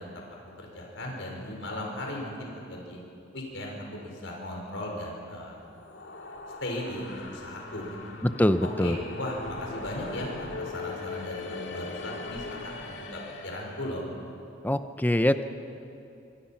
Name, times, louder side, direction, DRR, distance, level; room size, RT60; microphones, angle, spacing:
voice 1, 0.6-3.0 3.3-5.6 6.6-8.0 8.8-14.0, left 1 dB, 90° left, -1 dB, 5.4 m, -37 dB
sound 1, 5.6-13.9, left 3 dB, 70° left, 2.3 m, -40 dB
voice 2, 8.2-9.0 14.6-15.4, left 1 dB, 10° left, 10 dB, 0.7 m, -24 dB
25.5 x 24.5 x 5.9 m, 2.7 s
head